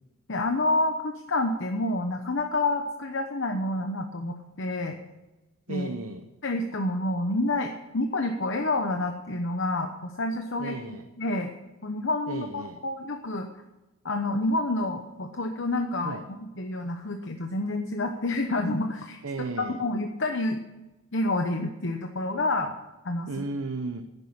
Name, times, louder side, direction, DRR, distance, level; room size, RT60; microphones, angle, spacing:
voice 1, 0.3-5.0 5.7-5.9 6.4-10.8 11.2-11.5 11.8-13.5 14.0-19.2 19.6-20.6 21.1-22.7 23.0-23.4, left 2 dB, 60° left, 5 dB, 1.0 m, -28 dB
voice 2, 5.7-6.2 10.6-11.1 12.3-12.8 16.0-16.2 19.2-19.8 23.3-24.0, right 3 dB, 75° right, 6 dB, 0.9 m, -34 dB
11.0 x 10.0 x 8.6 m, 1.0 s
head